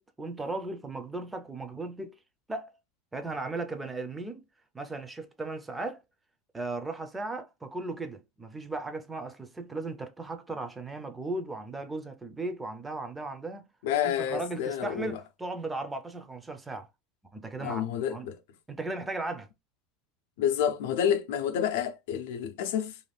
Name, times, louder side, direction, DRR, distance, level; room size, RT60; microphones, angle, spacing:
voice 1, 0.0-2.2 2.5-2.7 3.1-4.4 4.7-6.0 6.5-13.7 14.0-16.9 17.3-18.3 18.7-19.5, right 2 dB, 10° right, 0.4 m, -36 dB
voice 2, 13.8-15.2 17.6-18.4 20.4-23.0, left 9 dB, 75° left, 0.5 m, -29 dB
2.5 x 2.2 x 3.2 m
supercardioid pair, 150°, 0 cm